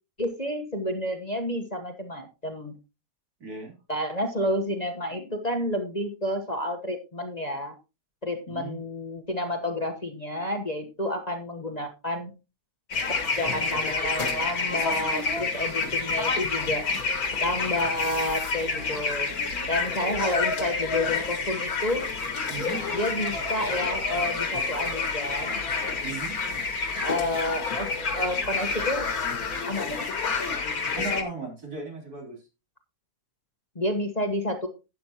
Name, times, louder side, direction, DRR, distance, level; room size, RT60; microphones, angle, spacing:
voice 1, 0.2-2.7 3.9-7.7 8.2-12.3 13.4-16.9 17.4-19.3 19.7-22.1 22.9-25.6 27.0-29.1 29.7-30.0 33.7-34.7, left 1 dB, 25° left, 4 dB, 1.3 m, -30 dB
voice 2, 3.4-3.7 8.5-8.8 22.5-22.8 26.0-26.4 31.0-32.4, right 2 dB, 65° right, 0 dB, 4.1 m, -36 dB
sound 1, 12.9-31.2, left 4 dB, 65° left, 2.2 m, -28 dB
12.0 x 9.5 x 3.0 m, 0.28 s
omnidirectional pair, 1.7 m